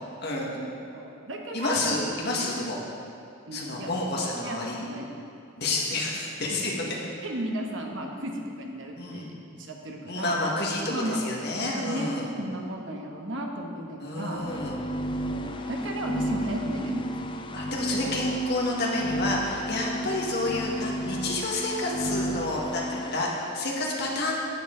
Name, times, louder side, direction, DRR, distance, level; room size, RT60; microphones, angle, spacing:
voice 1, 0.2-0.6 1.5-2.8 3.5-4.9 5.6-7.0 9.0-9.3 10.1-12.3 14.0-14.8 17.5-24.3, left 2 dB, 55° left, -2 dB, 1.6 m, -29 dB
voice 2, 0.9-1.8 2.3-2.5 3.5-3.9 4.4-5.1 6.5-6.8 7.2-10.4 10.9-11.2 11.8-14.5 15.2-17.0, right 1 dB, 60° right, 1 dB, 1.2 m, -34 dB
sound 1, 14.4-23.5, equal, 25° left, 0.4 m, -32 dB
11.0 x 8.6 x 3.8 m, 2.5 s
head